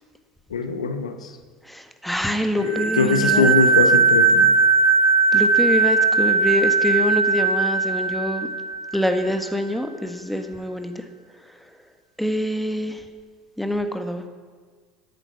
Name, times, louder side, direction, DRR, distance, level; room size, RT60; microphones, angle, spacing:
voice 1, 0.5-1.3 2.6-4.5, left 4 dB, 85° left, 8 dB, 1.0 m, -22 dB
voice 2, 1.7-3.5 5.3-8.5 8.9-10.9 12.2-13.0 13.6-14.2, left 1 dB, ahead, 6 dB, 1.5 m, -25 dB
sound 1, 2.6-9.1, right 4 dB, 85° right, 3.8 m, -19 dB
13.5 x 8.8 x 6.0 m, 1.5 s
hypercardioid pair, 70°, 3 cm